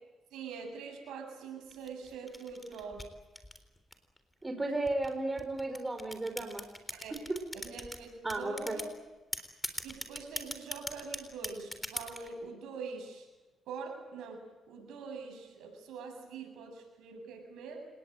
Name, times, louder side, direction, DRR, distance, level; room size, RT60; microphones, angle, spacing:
voice 1, 0.3-3.1 6.9-7.1 7.5-8.8 9.8-13.3 13.7-17.8, right 5 dB, 85° right, 3 dB, 7.9 m, -44 dB
sound 1, 1.7-4.2 4.9-8.0 8.3-8.9 9.3-12.3, left 1 dB, 10° left, 3.8 m, -40 dB
voice 2, 4.4-6.6 7.3-7.4 8.2-8.8, right 2 dB, 20° right, 5 dB, 4.6 m, -34 dB
29.0 x 19.0 x 9.0 m, 1.2 s
cardioid pair, 90°, 0 cm